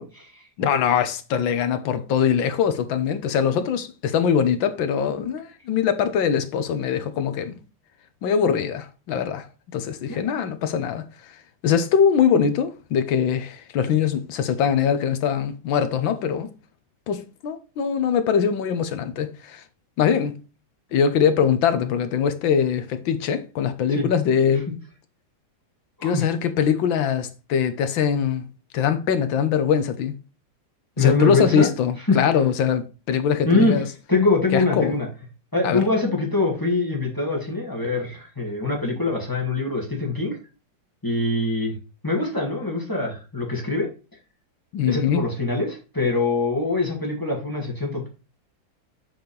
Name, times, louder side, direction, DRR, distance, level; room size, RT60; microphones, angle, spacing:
voice 1, 0.0-0.4 10.1-10.2 23.9-24.1 26.0-26.2 31.0-31.7 32.1-32.2 33.4-33.8 34.1-35.1 35.5-40.4 41.0-41.7 42.0-43.9 44.9-48.1, left 3 dB, 10° left, 2.0 m, -23 dB
voice 2, 0.6-7.5 8.2-9.5 9.7-11.3 11.6-16.5 17.1-19.6 20.0-20.4 20.9-24.7 26.0-28.5 28.7-30.2 31.0-33.9 34.5-35.0 35.6-35.8 44.7-45.2, left 7 dB, 90° left, 1.7 m, -22 dB
7.2 x 6.1 x 3.3 m
omnidirectional pair, 2.0 m